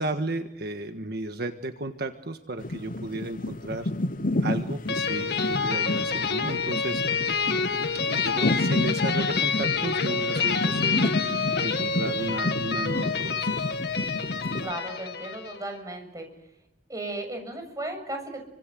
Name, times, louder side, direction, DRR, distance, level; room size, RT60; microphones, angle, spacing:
voice 1, 0.0-3.9 4.4-7.0 8.1-13.6, right 2 dB, 65° right, 7 dB, 1.5 m, -34 dB
sound 1, 2.6-14.7, left 1 dB, 50° left, 1.1 m, -30 dB
sound 2, 4.9-15.6, left 5 dB, 70° left, 2.2 m, -28 dB
voice 2, 14.6-16.3 16.9-18.4, right 2 dB, 20° right, 4 dB, 7.1 m, -35 dB
30.0 x 25.0 x 7.8 m, 0.84 s
head